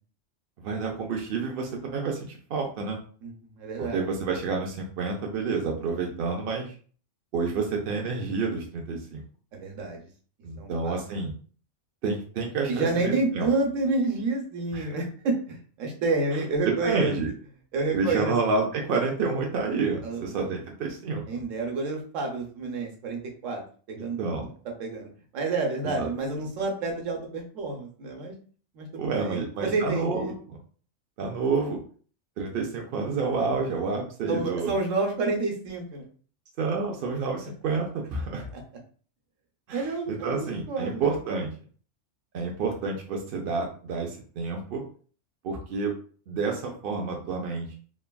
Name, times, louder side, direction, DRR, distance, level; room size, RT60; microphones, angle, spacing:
voice 1, 0.6-3.0 3.8-6.7 7.3-9.2 10.4-11.3 12.0-13.5 14.7-14.9 16.6-17.3 17.9-21.2 24.2-24.5 25.8-26.1 28.9-30.6 31.2-31.8 32.4-34.7 36.6-38.5 39.7-41.5 42.3-44.8 45.4-45.9 46.3-47.7, right 4 dB, 60° right, 0 dB, 0.6 m, -29 dB
voice 2, 3.2-4.0 9.5-10.0 10.6-11.0 12.7-17.2 17.7-18.4 20.0-20.2 21.3-23.6 23.9-24.2 24.8-28.3 28.7-30.3 34.3-36.1 38.5-38.6 39.7-41.1, right 3 dB, 85° right, 1 dB, 1.1 m, -29 dB
3.2 x 2.2 x 2.2 m, 0.43 s
omnidirectional pair, 1.3 m